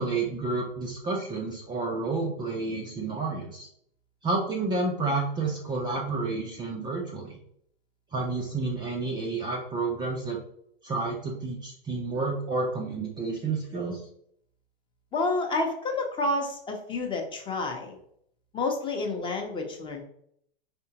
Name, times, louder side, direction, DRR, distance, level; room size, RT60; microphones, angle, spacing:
voice 1, 0.0-3.7 4.2-7.4 8.1-10.4 10.8-14.0, right 3 dB, 15° right, -2 dB, 0.5 m, -30 dB
voice 2, 15.1-18.0 18.5-20.0, left 2 dB, 15° left, 2 dB, 0.8 m, -29 dB
4.7 x 3.5 x 2.8 m, 0.69 s
hypercardioid pair, 130°, 30 cm